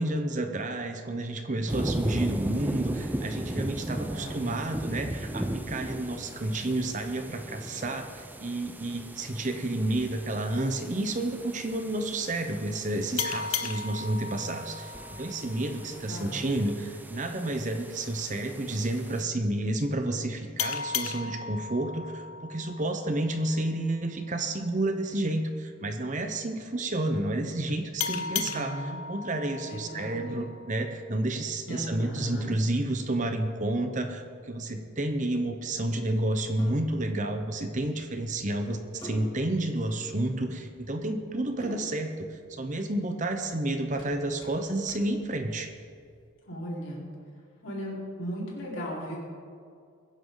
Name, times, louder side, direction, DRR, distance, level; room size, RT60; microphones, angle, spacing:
voice 1, 0.0-28.7 29.1-45.7, right 1 dB, 35° right, 6 dB, 1.0 m, -30 dB
sound 1, 1.7-19.2, right 1 dB, 10° right, 0.5 m, -37 dB
voice 2, 3.8-4.5 15.7-16.7 28.2-29.0 29.6-30.2 31.7-32.5 46.5-47.0 47.6-49.2, equal, 65° left, -5 dB, 4.4 m, -37 dB
sound 2, 13.2-16.4 20.6-23.8 28.0-30.9, left 6 dB, 85° left, 0.7 m, -36 dB
sound 3, 34.1-46.2, left 1 dB, 20° left, 2.8 m, -49 dB
22.0 x 10.5 x 4.0 m, 2.3 s
head